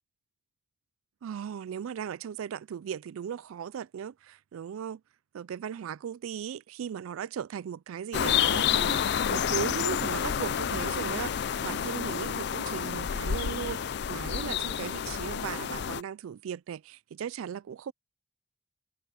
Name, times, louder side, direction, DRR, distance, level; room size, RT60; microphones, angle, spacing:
voice 1, 1.2-5.0 5.3-17.9, right 8 dB, 85° right, 0.3 m, -37 dB
sound 1, 8.1-16.0, left 8 dB, 55° left, 0.4 m, -29 dB
head